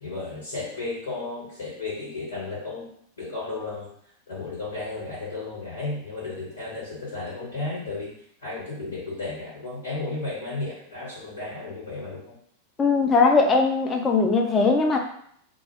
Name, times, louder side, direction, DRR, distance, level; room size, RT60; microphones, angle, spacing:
voice 1, 0.0-3.9 4.3-12.4, left 3 dB, 65° left, -8 dB, 1.1 m, -34 dB
voice 2, 12.8-15.0, left 4 dB, 20° left, 2 dB, 0.5 m, -20 dB
2.1 x 2.0 x 3.5 m, 0.63 s
figure-of-eight pair, 90°, 0 cm